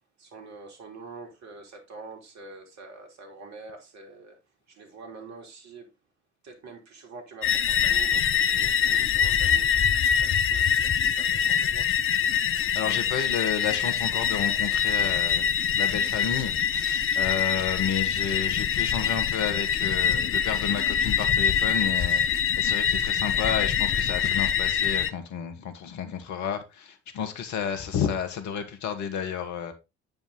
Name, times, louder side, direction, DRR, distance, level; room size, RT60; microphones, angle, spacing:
voice 1, 0.2-4.4 4.7-5.9 6.4-9.7 10.0-11.9, right 4 dB, 50° right, 3.0 m, -45 dB
sound 1, 7.4-25.1, left 8 dB, 40° left, 0.7 m, -24 dB
voice 2, 12.5-15.4 15.8-29.7, left 7 dB, 55° left, 1.7 m, -31 dB
9.0 x 5.4 x 3.9 m
figure-of-eight pair, 55°, 34 cm